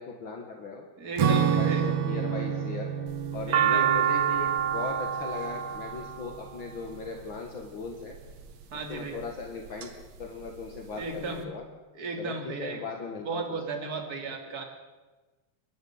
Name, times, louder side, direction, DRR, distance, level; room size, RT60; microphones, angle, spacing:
voice 1, 0.0-0.8 1.4-2.9 3.3-8.2 8.9-9.9 10.2-11.6 12.2-12.3 12.6-13.4, left 4 dB, 45° left, 2 dB, 1.7 m, -38 dB
voice 2, 1.0-1.9 3.5-4.1 8.7-9.2 11.0-11.5 11.9-12.8 13.2-14.6, right 3 dB, 25° right, 3 dB, 2.8 m, -35 dB
Acoustic guitar / Strum, 1.2-6.0, right 8 dB, 75° right, 3.6 m, -29 dB
sound 1, 3.1-7.3 8.1-8.6 9.2-9.9 10.2-10.3 10.5-11.3, right 9 dB, 55° right, 2.3 m, -27 dB
29.0 x 11.5 x 8.9 m, 1.2 s
omnidirectional pair, 4.8 m